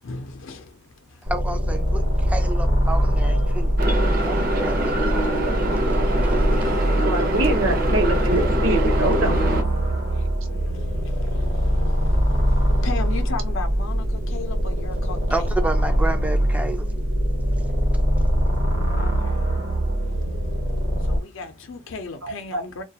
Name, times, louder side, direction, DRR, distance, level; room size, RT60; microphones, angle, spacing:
voice 1, 0.0-1.3 2.0-2.3 3.2-3.8 5.1-5.6 6.2-7.0 9.7-15.6 18.9-22.8, left 4 dB, 70° left, 0.5 m, -38 dB
voice 2, 1.2-3.7 4.3-5.1 6.5-6.7 15.3-16.9, right 2 dB, 5° right, 0.3 m, -30 dB
sound 1, 1.3-21.2, equal, 65° right, 1.0 m, -22 dB
sound 2, 3.8-9.6, right 1 dB, 45° right, 0.6 m, -25 dB
voice 3, 7.0-9.4 22.2-22.6, right 2 dB, 90° right, 0.8 m, -24 dB
2.3 x 2.2 x 2.7 m
head